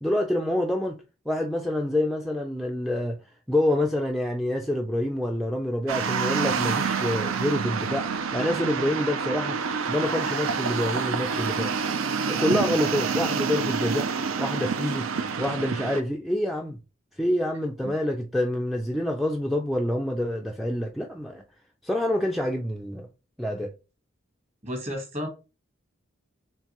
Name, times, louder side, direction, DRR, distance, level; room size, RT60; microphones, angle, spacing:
voice 1, 0.0-0.9 1.3-3.2 3.5-9.6 9.9-11.7 12.3-14.1 14.4-15.1 15.4-16.8 17.2-21.4 21.8-23.1 23.4-23.7, left 1 dB, ahead, 0.3 m, -27 dB
sound 1, 5.9-16.0, right 5 dB, 80° right, 0.5 m, -27 dB
voice 2, 24.6-25.3, equal, 30° right, 1.3 m, -32 dB
4.5 x 3.2 x 2.9 m
head